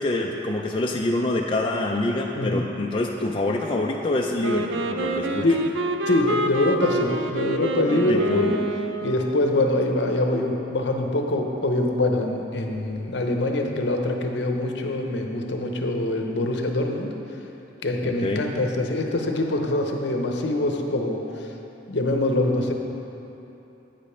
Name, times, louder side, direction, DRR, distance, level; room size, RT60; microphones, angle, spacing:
voice 1, 0.0-5.5 8.1-8.5 18.0-18.5, left 2 dB, 30° left, 0 dB, 0.4 m, -26 dB
Wind instrument woodwind instrument, 4.4-9.4, right 2 dB, 90° right, 0.5 m, -28 dB
voice 2, 6.1-8.6 9.0-17.1 17.8-21.5 21.9-22.7, left 1 dB, 70° left, 3 dB, 0.7 m, -24 dB
8.8 x 5.1 x 5.7 m, 3.0 s
head